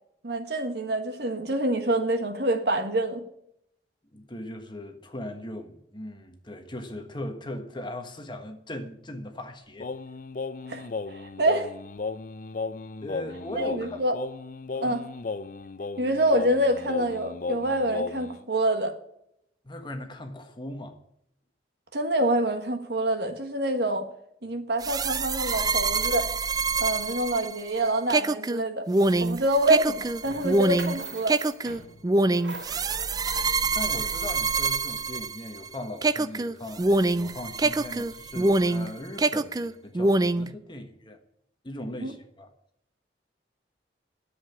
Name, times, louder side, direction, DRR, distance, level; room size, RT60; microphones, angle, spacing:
voice 1, 0.2-3.2 10.7-11.7 13.5-14.2 14.8-15.0 16.0-18.9 21.9-24.0 24.4-26.3 26.8-28.9 29.2-31.3 42.0-42.1, right 1 dB, 60° right, 1.6 m, -26 dB
voice 2, 4.1-9.9 13.0-14.0 14.7-15.0 19.6-21.0 33.6-36.9 37.1-41.2 41.6-42.5, left 1 dB, 25° left, 1.4 m, -39 dB
Singing, 9.8-18.4, left 4 dB, 45° left, 0.5 m, -35 dB
sound 1, 24.8-35.7 36.0-38.9 39.2-40.5, right 3 dB, 20° right, 0.4 m, -25 dB
sound 2, 30.2-34.9, right 3 dB, 80° right, 5.2 m, -44 dB
10.0 x 7.9 x 9.7 m
head